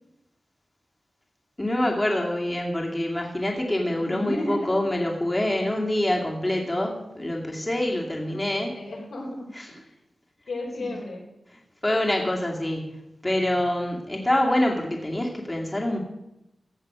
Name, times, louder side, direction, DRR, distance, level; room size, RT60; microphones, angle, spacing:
voice 1, 1.6-8.7 11.8-13.0 13.2-16.0, left 1 dB, 20° left, -1 dB, 2.5 m, -25 dB
voice 2, 4.0-4.8 8.3-9.9 10.5-11.3 13.5-13.6, left 1 dB, 90° left, -1 dB, 3.7 m, -34 dB
15.0 x 6.6 x 6.2 m, 0.89 s
wide cardioid pair, 75°, 0 cm